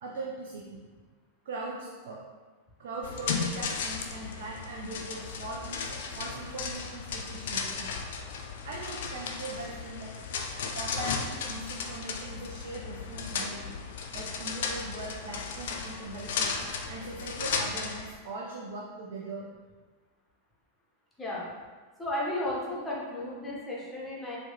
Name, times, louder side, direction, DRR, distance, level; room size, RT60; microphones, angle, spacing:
voice 1, 0.0-0.8 1.5-2.2 2.8-7.9 8.6-10.2 10.7-13.8 14.1-16.5 16.9-19.5, right 2 dB, 55° right, -2 dB, 0.4 m, -40 dB
sound 1, 3.0-18.1, left 5 dB, 55° left, 0.3 m, -35 dB
voice 2, 22.0-24.4, left 1 dB, 10° left, -5 dB, 1.0 m, -34 dB
4.4 x 2.2 x 2.9 m, 1.4 s
figure-of-eight pair, 90°, 0 cm